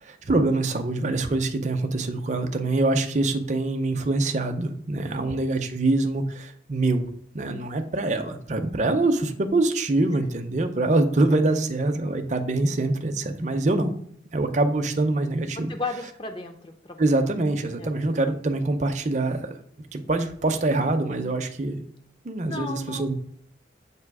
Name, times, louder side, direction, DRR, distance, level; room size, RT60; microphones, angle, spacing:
voice 1, 0.0-7.0 7.3-13.9 14.3-15.7 17.0-19.5 19.9-21.8 22.2-23.1, right 2 dB, 40° right, 6 dB, 0.5 m, -24 dB
voice 2, 5.0-5.4 10.1-10.2 15.7-17.0 17.8-17.9 22.5-23.1, left 3 dB, 25° left, 6 dB, 0.6 m, -35 dB
7.4 x 2.8 x 4.7 m, 0.65 s
head